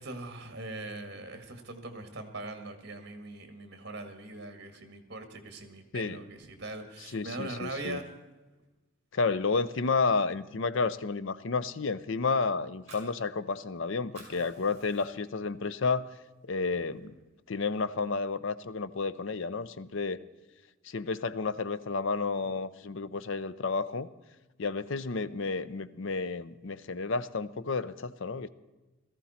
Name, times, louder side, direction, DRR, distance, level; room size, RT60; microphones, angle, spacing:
voice 1, 0.0-8.0, right 2 dB, 50° right, 6 dB, 1.9 m, -41 dB
voice 2, 7.1-8.0 9.1-16.1 16.5-17.1 17.5-20.2 20.8-24.1 24.6-28.5, left 4 dB, 60° left, 14 dB, 0.6 m, -31 dB
Fire, 12.6-13.8 14.0-15.4 15.8-15.9 16.3-17.3, right 3 dB, 30° right, 5.5 m, -53 dB
17.5 x 14.0 x 4.3 m, 1.2 s
head